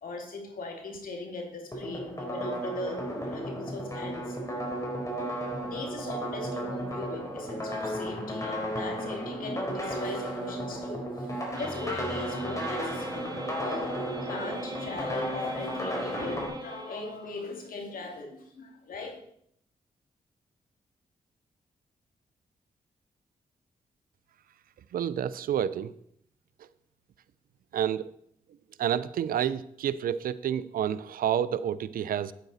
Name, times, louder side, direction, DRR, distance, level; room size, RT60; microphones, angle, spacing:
voice 1, 0.0-4.4 5.6-19.2, left 3 dB, 70° left, 2 dB, 2.5 m, -39 dB
sound 1, 1.7-16.5, equal, 20° left, 4.1 m, -34 dB
sound 2, 11.6-17.4, right 2 dB, 25° right, 1.2 m, -40 dB
voice 2, 24.9-25.9 27.7-28.1 28.8-32.3, right 9 dB, 75° right, 17 dB, 0.5 m, -29 dB
9.2 x 8.9 x 4.1 m, 0.70 s
supercardioid pair, 50°, 15 cm